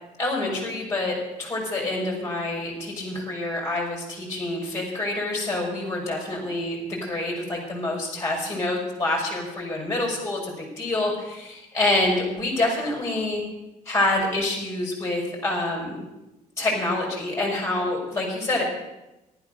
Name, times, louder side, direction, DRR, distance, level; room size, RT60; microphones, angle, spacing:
voice 1, 0.2-13.4 13.9-16.0 16.6-18.6, left 2 dB, 20° left, -1 dB, 5.4 m, -27 dB
14.5 x 12.0 x 6.6 m, 0.96 s
cardioid pair, 170°, 15 cm